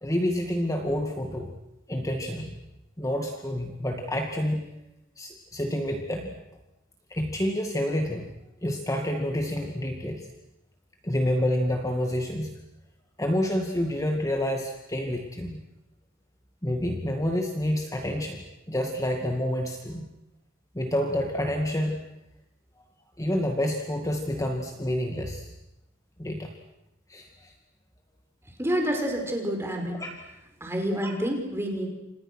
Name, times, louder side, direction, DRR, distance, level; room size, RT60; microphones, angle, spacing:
voice 1, 0.0-1.5 1.9-2.6 3.0-4.7 5.2-6.3 7.1-8.3 8.6-10.3 11.0-12.6 13.2-15.6 16.6-20.1 20.7-22.0 23.2-25.5 26.2-26.5 27.1-27.5 30.0-30.1, left 1 dB, 15° left, 3 dB, 2.2 m, -28 dB
voice 2, 28.6-30.0 30.6-31.9, equal, 15° right, 2 dB, 5.4 m, -28 dB
30.0 x 27.0 x 6.3 m, 0.91 s
head